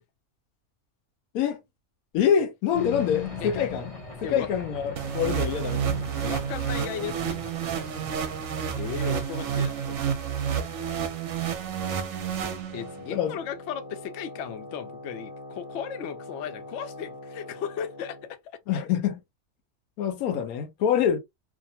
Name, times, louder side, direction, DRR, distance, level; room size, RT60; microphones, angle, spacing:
voice 1, 2.1-3.9 4.3-6.0 13.1-13.4 18.7-19.2 20.0-21.2, left 8 dB, 80° left, 1.1 m, -25 dB
sound 1, 2.7-9.2, left 4 dB, 30° left, 0.7 m, -39 dB
sound 2, 5.0-13.1, right 8 dB, 65° right, 0.9 m, -30 dB
voice 2, 6.2-7.4 8.8-10.1 12.7-18.4, left 8 dB, 65° left, 0.7 m, -36 dB
Wind instrument woodwind instrument, 12.7-18.4, left 2 dB, 25° right, 1.1 m, -43 dB
2.8 x 2.0 x 2.7 m
omnidirectional pair, 1.5 m